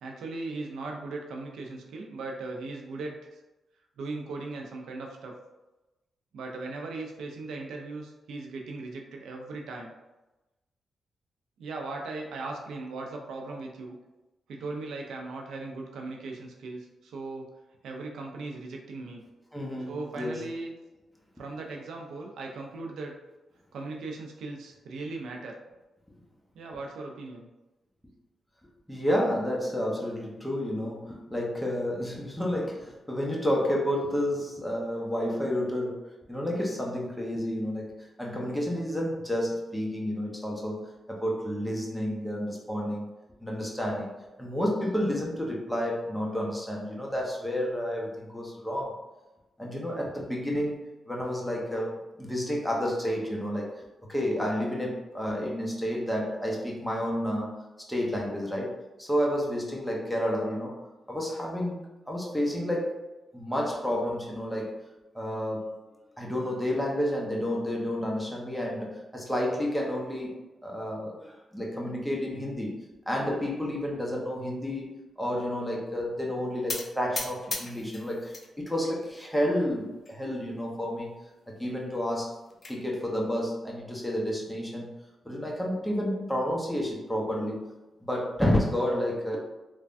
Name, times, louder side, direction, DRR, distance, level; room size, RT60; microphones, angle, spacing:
voice 1, 0.0-3.4 4.0-5.3 6.3-9.9 11.6-13.9 14.5-17.5 17.8-19.2 19.9-20.7 21.4-23.2 23.7-25.6 26.5-27.5, right 3 dB, 85° right, 1 dB, 0.4 m, -38 dB
voice 2, 19.5-20.4 28.9-37.9 38.2-43.1 43.4-49.0 49.6-53.7 54.1-57.6 57.9-60.8 61.1-61.8 62.1-63.1 63.3-64.8 65.1-65.8 66.2-81.1 81.5-82.4 82.7-84.9 85.2-87.7 88.0-89.4, equal, 5° left, -2 dB, 0.8 m, -30 dB
sound 1, 76.7-78.5 78.9-79.5 80.0-80.2 80.4-80.5 80.9-81.0 82.1-82.8, left 3 dB, 45° left, 0.5 m, -37 dB
3.2 x 2.2 x 2.5 m, 1.0 s
cardioid pair, 70°, 0 cm